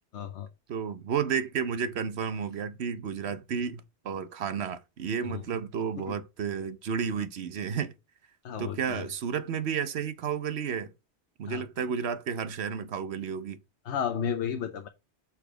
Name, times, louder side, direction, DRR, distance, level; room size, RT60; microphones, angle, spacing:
voice 1, 0.1-0.5 5.2-5.4 5.9-6.1 8.4-9.1 11.5-11.9 13.8-14.9, left 8 dB, 80° left, 1.0 m, -33 dB
voice 2, 0.7-7.9 8.6-10.9 11.4-13.6, right 7 dB, 70° right, 1.0 m, -32 dB
6.9 x 4.2 x 4.9 m
omnidirectional pair, 1.1 m